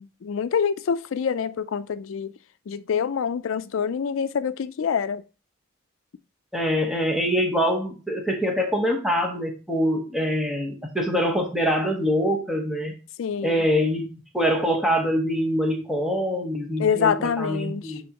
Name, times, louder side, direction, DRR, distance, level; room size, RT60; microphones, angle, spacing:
voice 1, 0.0-2.3 2.7-5.2 13.2-13.6 16.8-18.0, left 7 dB, 75° left, 0.4 m, -26 dB
voice 2, 6.5-12.9 13.4-18.0, equal, ahead, 1.1 m, -24 dB
10.5 x 3.6 x 2.9 m
head